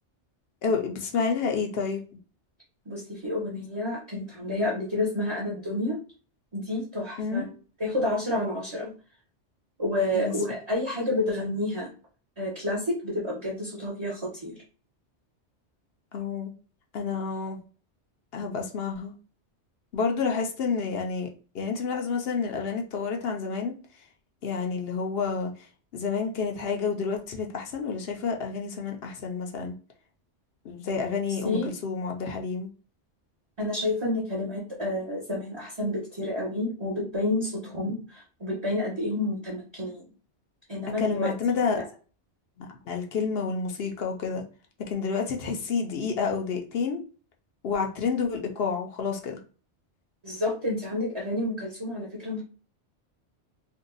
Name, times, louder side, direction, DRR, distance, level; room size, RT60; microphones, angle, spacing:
voice 1, 0.6-2.0 7.2-7.5 10.1-10.3 16.1-16.5 16.9-17.6 18.3-19.1 19.9-21.3 21.5-23.7 24.4-25.5 25.9-29.7 30.6-32.7 41.0-41.8 42.6-44.4 44.9-47.0 47.6-49.4, left 5 dB, 65° left, 0.8 m, -29 dB
voice 2, 2.9-6.0 6.5-7.5 7.8-8.9 9.8-11.9 12.4-14.6 31.4-31.7 33.6-40.1 40.7-41.3 41.7-41.8 50.2-52.4, left 1 dB, 30° right, 0.8 m, -29 dB
2.7 x 2.2 x 3.8 m
omnidirectional pair, 1.2 m